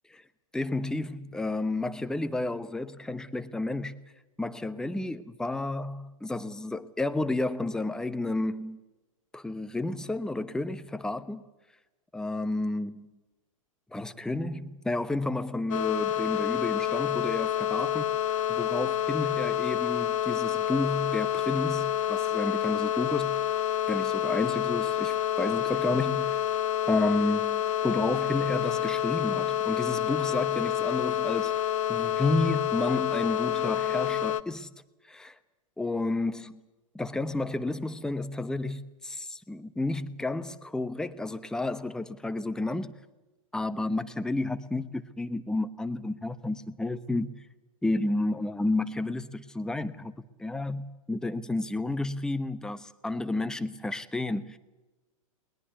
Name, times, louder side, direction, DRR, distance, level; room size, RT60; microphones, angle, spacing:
voice 1, 0.5-3.9 4.4-8.8 9.3-11.4 12.1-13.1 13.9-18.0 18.5-23.4 23.9-26.4 26.9-31.5 31.9-34.7 35.0-35.4 35.8-36.6 36.9-42.9 43.5-47.3 47.8-54.6, left 2 dB, 5° left, 1.0 m, -31 dB
sound 1, 15.7-34.4, left 11 dB, 70° left, 1.0 m, -28 dB
21.0 x 21.0 x 8.3 m
hypercardioid pair, 110°, 18 cm